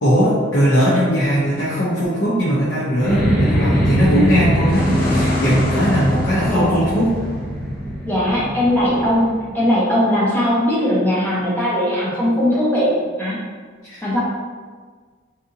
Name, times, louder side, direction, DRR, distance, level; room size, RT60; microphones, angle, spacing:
voice 1, 0.0-7.1 13.8-14.0, equal, 75° left, -8 dB, 0.7 m, -19 dB
sound 1, 3.0-9.6, equal, 50° left, 0.8 m, -21 dB
voice 2, 6.5-6.8 8.0-12.9 13.2-13.4 14.0-14.2, left 1 dB, 10° left, -7 dB, 0.8 m, -19 dB
4.0 x 2.5 x 2.7 m, 1.6 s
head